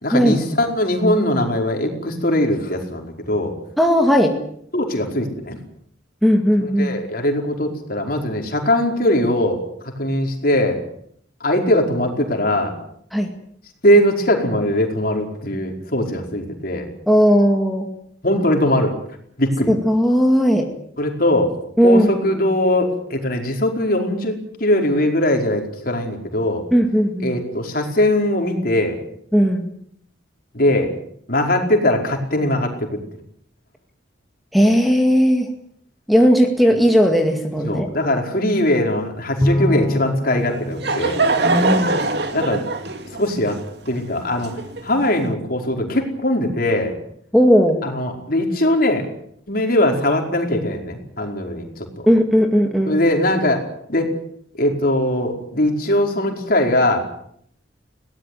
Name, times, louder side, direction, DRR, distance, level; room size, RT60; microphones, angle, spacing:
voice 1, 0.0-3.5 4.7-5.6 6.6-9.6 10.0-10.8 11.4-12.7 13.8-16.9 18.2-18.9 19.4-19.7 21.0-21.5 21.8-26.6 27.2-29.0 30.5-30.9 31.3-33.0 37.6-41.2 42.3-42.6 43.2-43.6 43.9-44.5 44.8-46.9 47.8-49.1 49.5-51.9 52.9-53.6 53.9-54.1 54.6-57.0, left 1 dB, 50° left, 3 dB, 5.0 m, -20 dB
voice 2, 3.8-4.4 6.2-7.0 13.1-13.3 17.1-17.9 19.7-20.7 21.8-22.1 26.7-27.4 29.3-29.7 34.5-35.5 36.1-37.9 41.4-42.0 47.3-47.8 52.1-52.9, equal, ahead, 2 dB, 2.1 m, -16 dB
Bowed string instrument, 39.4-42.0, left 1 dB, 15° left, 1.0 m, -24 dB
Laughter / Crowd, 40.4-45.1, right 3 dB, 60° right, 2.6 m, -23 dB
22.0 x 18.0 x 9.4 m, 0.68 s
head